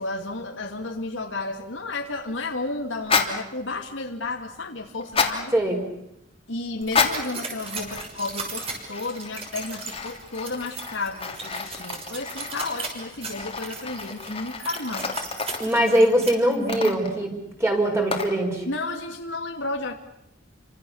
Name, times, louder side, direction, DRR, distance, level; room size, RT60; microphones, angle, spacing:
voice 1, 0.0-5.6 6.5-15.2 18.7-19.9, left 2 dB, 85° left, 2 dB, 2.4 m, -32 dB
sound 1, 3.0-3.4 5.0-5.4 6.8-7.3 7.9-8.4 8.6-15.7 16.5-17.2 18.1-18.4, left 5 dB, 30° left, 3.0 m, -29 dB
voice 2, 5.5-5.8 15.6-17.3 17.6-18.6, right 1 dB, 15° right, 2 dB, 5.8 m, -21 dB
sound 2, 6.8-16.3, right 4 dB, 30° right, 6.6 m, -37 dB
29.5 x 25.5 x 7.2 m, 0.82 s
head